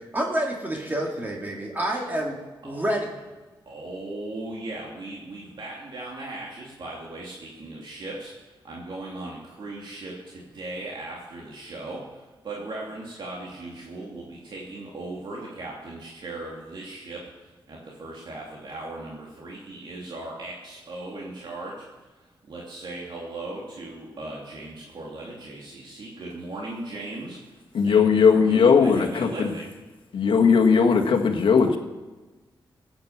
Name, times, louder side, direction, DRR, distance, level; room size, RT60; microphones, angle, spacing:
voice 1, 0.1-2.4 2.6-3.1, right 1 dB, 20° right, 0 dB, 2.2 m, -28 dB
voice 2, 3.7-21.8 22.1-29.7, right 2 dB, 65° right, -3 dB, 2.6 m, -38 dB
voice 3, 27.7-29.5 30.1-31.8, left 6 dB, 80° left, 4 dB, 1.6 m, -18 dB
17.0 x 8.9 x 7.2 m, 1.2 s
wide cardioid pair, 110°, 9 cm